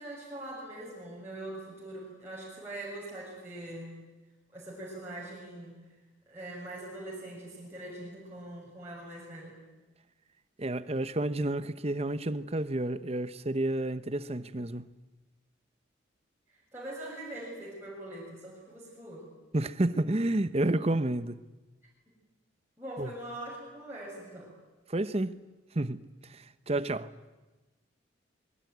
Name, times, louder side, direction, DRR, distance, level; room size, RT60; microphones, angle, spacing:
voice 1, 0.0-4.0 4.5-5.7 6.3-9.6 16.5-19.3 22.8-24.5, right 1 dB, 10° right, 6.9 m, -42 dB
voice 2, 10.6-14.9 19.5-21.4 23.0-23.1 24.9-25.4 25.7-26.0 26.3-27.1, right 1 dB, 30° right, 0.9 m, -30 dB
26.0 x 22.5 x 9.5 m
head